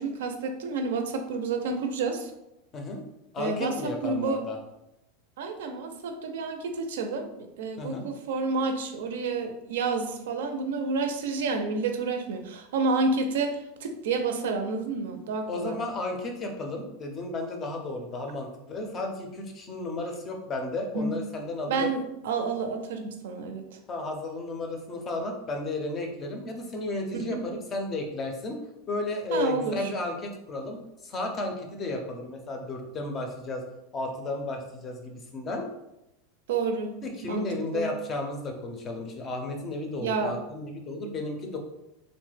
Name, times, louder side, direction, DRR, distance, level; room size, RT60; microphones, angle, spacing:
voice 1, 0.0-2.3 3.4-4.4 5.4-15.8 20.9-21.2 21.7-23.7 27.2-27.4 29.3-29.8 36.5-37.0 37.2-37.9 40.0-40.3, right 4 dB, 85° right, 6 dB, 0.4 m, -29 dB
voice 2, 3.3-4.6 7.8-8.0 15.5-21.9 23.9-28.6 28.9-33.6 33.9-35.6 37.0-41.6, left 2 dB, 20° left, 3 dB, 0.4 m, -33 dB
3.0 x 2.1 x 3.2 m, 0.88 s
supercardioid pair, 170°, 0 cm